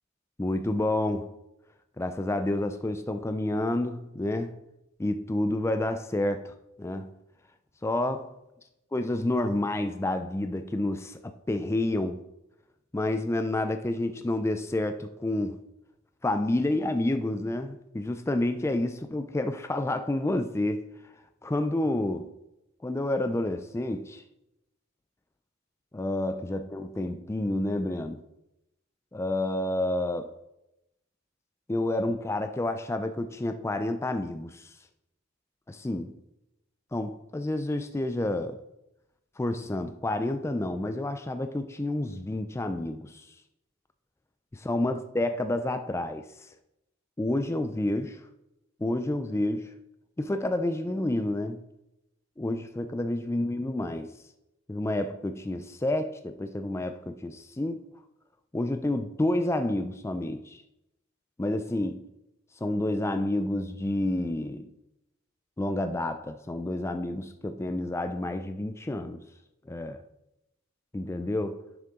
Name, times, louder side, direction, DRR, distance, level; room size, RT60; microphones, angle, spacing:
voice 1, 0.4-1.3 2.0-4.6 5.0-7.1 7.8-8.3 8.9-12.2 12.9-15.6 16.2-20.8 21.4-22.3 22.8-24.2 25.9-28.2 29.1-30.3 31.7-34.7 35.7-36.1 36.9-38.6 39.4-43.3 44.5-46.5 47.2-48.2 48.8-49.7 50.2-51.6 52.4-54.1 54.7-57.8 58.5-60.6 61.4-62.1 62.6-64.7 65.6-69.2 69.7-70.0 70.9-71.7, left 1 dB, 15° left, 0.4 m, -29 dB
10.5 x 6.6 x 3.7 m
head